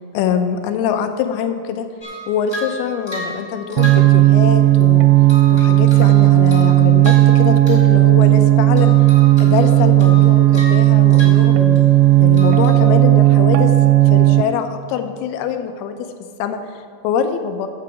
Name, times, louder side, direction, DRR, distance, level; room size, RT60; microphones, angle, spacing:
voice 1, 0.1-1.9 2.3-5.1 5.5-8.9 9.4-11.8 12.2-13.7 14.1-16.1 16.4-17.7, left 7 dB, 80° left, 8 dB, 2.4 m, -23 dB
sound 1, 2.0-4.8 5.3-7.9 8.2-8.5 8.8-12.0 12.3-12.8, equal, 20° left, 0.6 m, -34 dB
sound 2, 3.8-14.4, right 15 dB, 85° right, 2.8 m, -12 dB
14.5 x 5.7 x 4.9 m, 2.2 s
omnidirectional pair, 5.0 m